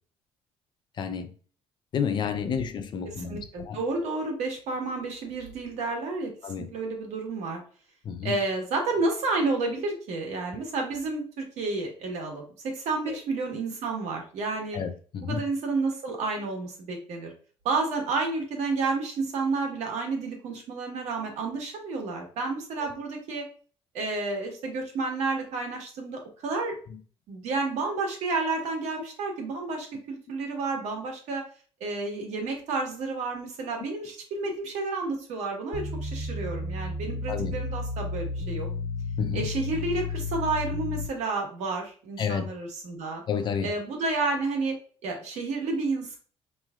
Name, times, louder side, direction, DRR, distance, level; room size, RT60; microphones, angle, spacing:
voice 1, 1.0-1.3 1.9-3.8 6.4-6.7 8.0-8.4 13.1-13.2 14.7-15.4 22.8-22.9 37.3-37.5 39.2-39.5 42.2-42.5 43.3-43.7, left 7 dB, 40° left, 0.5 m, -30 dB
voice 2, 3.0-7.6 8.2-14.8 15.2-17.3 17.6-23.4 23.9-26.8 27.3-31.4 31.8-38.7 39.3-43.2 43.6-44.8 45.0-46.2, right 3 dB, 80° right, 1.4 m, -30 dB
sound 1, 35.7-41.1, left 3 dB, 85° left, 1.0 m, -32 dB
5.4 x 3.1 x 2.4 m
cardioid pair, 160°, 11 cm